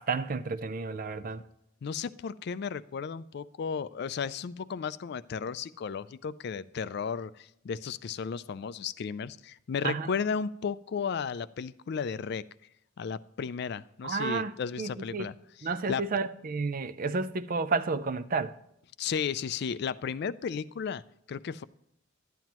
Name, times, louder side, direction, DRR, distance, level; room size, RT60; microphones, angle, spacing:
voice 1, 0.0-1.4 9.8-10.1 14.0-15.3 15.6-18.6, right 4 dB, 45° right, 0.5 m, -31 dB
voice 2, 1.8-12.4 13.0-15.3 15.9-16.0 19.0-21.0 21.3-21.6, left 6 dB, 55° left, 0.4 m, -34 dB
12.0 x 9.2 x 2.9 m
head